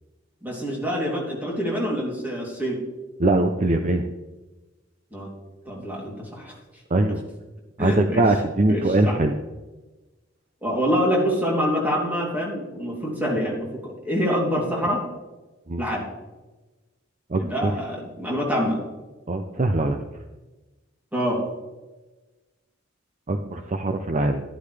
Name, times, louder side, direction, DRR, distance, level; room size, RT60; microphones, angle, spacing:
voice 1, 0.4-2.8 5.1-5.3 5.6-6.6 7.8-8.2 8.7-9.2 10.6-15.0 15.8-16.0 17.3-18.8 21.1-21.4, equal, 10° right, -3 dB, 3.0 m, -26 dB
voice 2, 3.2-4.1 6.9-7.2 7.8-9.3 15.7-15.8 17.3-17.8 19.3-20.0 23.3-24.4, right 2 dB, 35° right, 6 dB, 0.6 m, -22 dB
12.0 x 11.5 x 3.4 m, 1.2 s
head